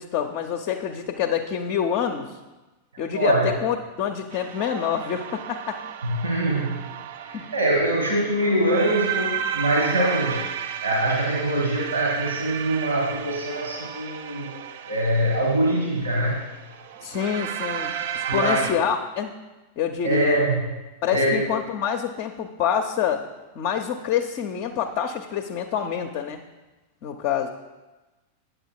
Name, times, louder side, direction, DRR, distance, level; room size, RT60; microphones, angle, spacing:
voice 1, 0.0-2.3 3.0-5.8 7.3-7.5 17.0-19.3 19.8-20.4 21.0-23.3 23.5-26.4 27.0-27.5, left 8 dB, 40° left, 5 dB, 0.6 m, -27 dB
voice 2, 3.1-3.5 6.0-14.5 14.8-16.4 18.3-18.6 20.0-20.7 21.1-21.4, right 1 dB, 75° right, -1 dB, 1.6 m, -24 dB
sound 1, 4.3-18.7, right 9 dB, 55° right, 0.4 m, -33 dB
8.7 x 6.6 x 4.6 m, 1.1 s
figure-of-eight pair, 90°, 0 cm